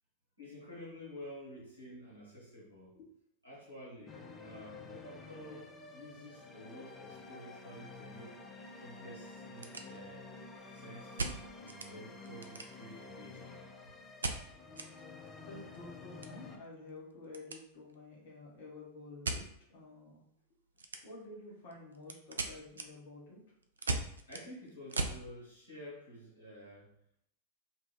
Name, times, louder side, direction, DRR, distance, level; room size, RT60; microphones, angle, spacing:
voice 1, 0.4-3.0 3.4-8.3 8.8-10.3 10.7-13.9 24.3-26.9, equal, 90° left, -7 dB, 1.4 m, -51 dB
sound 1, 4.1-16.6, left 3 dB, 20° left, 0.4 m, -50 dB
sound 2, 8.4-8.5 8.7-8.8 9.3-10.3 11.2-11.9 12.2-13.0 14.2-14.9 15.2-15.3 15.6-17.6 17.9-18.2 19.2-19.5 20.8-21.3 21.7-25.2, right 3 dB, 70° right, 0.3 m, -39 dB
voice 2, 15.4-20.2 21.0-23.4, left 2 dB, 55° left, -3 dB, 1.1 m, -50 dB
2.7 x 2.6 x 3.2 m, 0.72 s
figure-of-eight pair, 90°, 0 cm